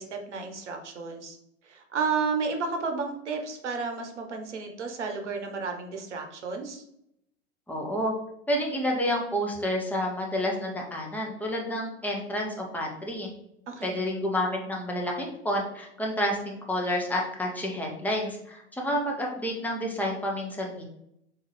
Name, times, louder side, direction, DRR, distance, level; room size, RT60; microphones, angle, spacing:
voice 1, 0.0-1.4 1.6-6.8 13.7-14.0, right 4 dB, 75° right, 3 dB, 0.9 m, -32 dB
voice 2, 7.7-8.1 8.5-13.3 13.8-20.9, equal, 5° left, -1 dB, 0.9 m, -29 dB
3.7 x 2.7 x 3.3 m, 0.76 s
figure-of-eight pair, 85°, 35 cm